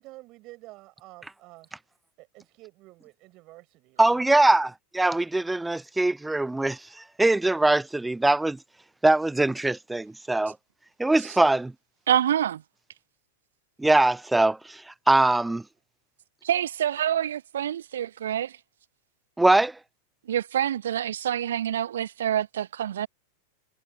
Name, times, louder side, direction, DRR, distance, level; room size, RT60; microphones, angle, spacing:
voice 1, 0.0-1.7 2.2-4.5 5.8-5.9, right 20 dB, 40° right, 7.7 m, -49 dB
voice 2, 4.0-6.8 7.2-8.6 9.0-10.5 11.0-11.7 13.8-14.8 15.1-15.6 19.4-19.7, right 2 dB, 5° right, 0.8 m, -22 dB
voice 3, 12.1-12.6 16.4-18.5 20.3-23.1, right 10 dB, 60° right, 1.1 m, -26 dB
figure-of-eight pair, 90°, 0 cm